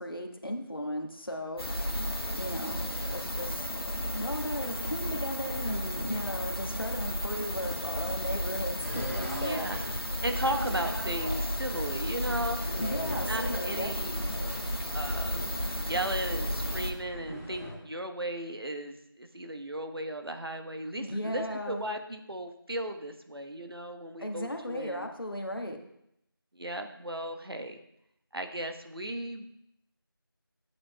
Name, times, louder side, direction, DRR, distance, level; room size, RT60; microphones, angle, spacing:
voice 1, 0.0-1.6 2.4-2.8 3.1-3.7 4.1-9.7 12.8-13.9 21.0-21.8 24.2-25.8, left 1 dB, 70° left, 3 dB, 1.4 m, -36 dB
sound 1, 1.6-16.9, equal, 85° left, 1.3 m, -33 dB
sound 2, 8.8-17.8, equal, 35° right, 1.6 m, -41 dB
voice 2, 9.2-9.8 10.2-12.8 13.2-14.6 14.9-15.4 15.8-25.1 26.5-27.8 28.3-29.4, right 1 dB, 80° right, 6 dB, 1.1 m, -36 dB
12.5 x 8.5 x 2.2 m, 0.80 s
figure-of-eight pair, 180°, 12 cm